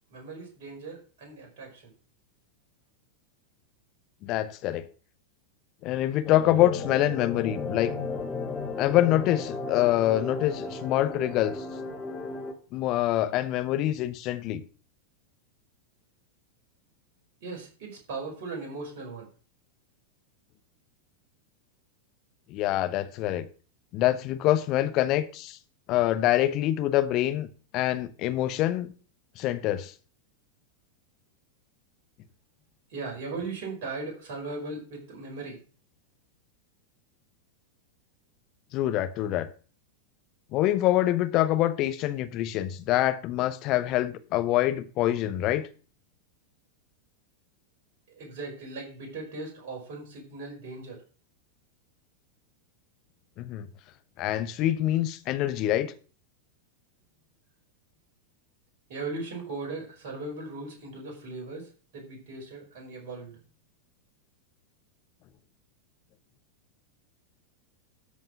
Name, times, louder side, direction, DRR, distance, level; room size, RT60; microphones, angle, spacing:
voice 1, 0.1-1.9 17.4-19.3 32.9-35.6 48.1-51.0 58.9-63.4, right 3 dB, 50° right, 4.9 m, -38 dB
voice 2, 4.2-4.9 5.8-7.9 8.8-11.6 12.7-14.6 22.5-23.5 23.9-25.6 25.9-27.5 27.7-28.9 29.4-29.9 38.7-39.5 40.5-45.7 53.4-53.7 54.2-55.9, left 14 dB, 40° left, 0.9 m, -25 dB
sound 1, 6.2-12.5, left 4 dB, 15° left, 2.3 m, -34 dB
13.0 x 4.9 x 6.0 m
figure-of-eight pair, 90°, 0 cm